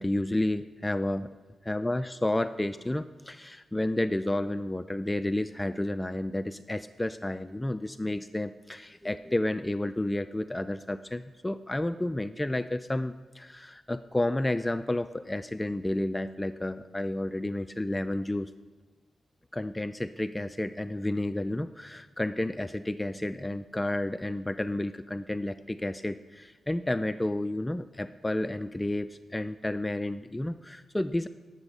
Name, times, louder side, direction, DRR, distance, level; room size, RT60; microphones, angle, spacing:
voice 1, 0.0-1.3 1.7-18.5 19.5-31.3, left 1 dB, 15° left, 11 dB, 0.3 m, -31 dB
12.0 x 6.8 x 5.4 m, 1.3 s
cardioid pair, 65°, 0 cm